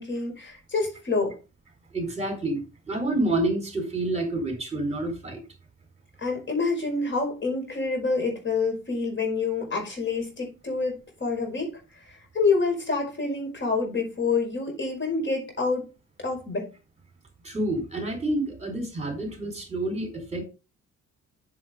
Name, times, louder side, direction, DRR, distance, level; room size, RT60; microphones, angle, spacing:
voice 1, 0.0-1.4 6.2-15.9 16.2-16.7, left 4 dB, 40° left, 1 dB, 5.4 m, -27 dB
voice 2, 1.9-5.4 17.4-20.5, right 1 dB, 20° right, 4 dB, 4.2 m, -28 dB
7.6 x 7.1 x 5.2 m, 0.31 s
cardioid pair, 90°, 30 cm